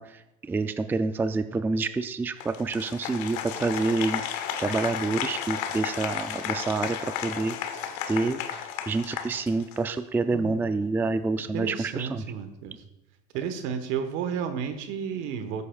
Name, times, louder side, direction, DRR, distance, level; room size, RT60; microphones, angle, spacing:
voice 1, 0.0-7.8 8.1-12.2, right 3 dB, 10° right, 11 dB, 0.3 m, -28 dB
Applause, 2.4-10.0, left 9 dB, 80° left, 1.0 m, -33 dB
voice 2, 10.3-10.6 11.5-12.8 13.3-15.7, right 7 dB, 70° right, 8 dB, 1.3 m, -32 dB
15.0 x 8.3 x 2.4 m, 0.92 s
supercardioid pair, 115°, 21 cm